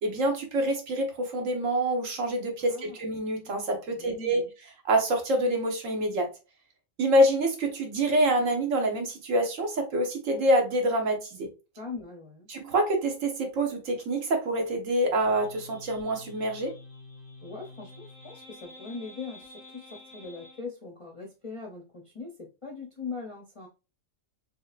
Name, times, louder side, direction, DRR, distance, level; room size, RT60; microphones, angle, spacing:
voice 1, 0.0-4.4 4.8-6.3 7.0-11.5 12.5-16.7, right 1 dB, 70° right, 1.4 m, -26 dB
voice 2, 2.6-3.0 4.0-4.5 11.8-12.5 17.4-23.7, left 4 dB, 35° left, 0.5 m, -41 dB
sound 1, 15.2-20.6, left 2 dB, 50° right, 2.0 m, -48 dB
4.6 x 2.9 x 2.4 m
omnidirectional pair, 1.4 m